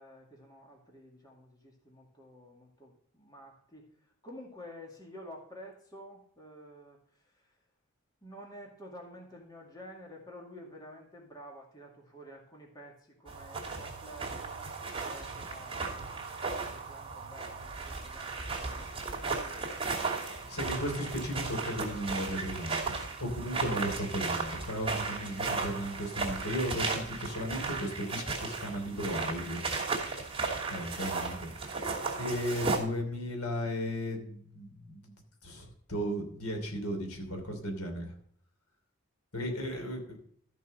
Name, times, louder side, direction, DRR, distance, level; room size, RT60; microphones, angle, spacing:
voice 1, 0.0-7.6 8.2-14.6 14.9-16.3 16.6-19.8 30.8-31.3 39.3-40.1, equal, 20° left, 0 dB, 2.2 m, -51 dB
sound 1, 13.3-32.8, right 4 dB, 25° right, 2.6 m, -35 dB
voice 2, 20.5-22.9 23.2-29.6 30.1-30.3 30.7-31.5 32.2-35.1 35.4-38.1 39.3-40.2, equal, 90° left, 3 dB, 3.0 m, -35 dB
14.0 x 5.5 x 6.5 m, 0.65 s
head